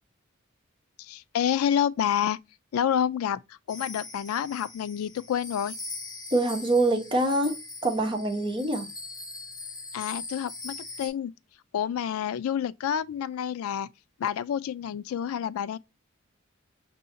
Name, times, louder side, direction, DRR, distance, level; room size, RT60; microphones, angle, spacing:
voice 1, 1.0-2.4 2.7-5.8 9.9-11.3 11.7-13.9 14.2-15.8, left 9 dB, 85° left, 0.3 m, -28 dB
sound 1, 3.7-11.1, left 3 dB, 20° left, 0.9 m, -41 dB
voice 2, 6.3-8.9, right 2 dB, 25° right, 1.0 m, -25 dB
6.2 x 2.7 x 2.6 m
head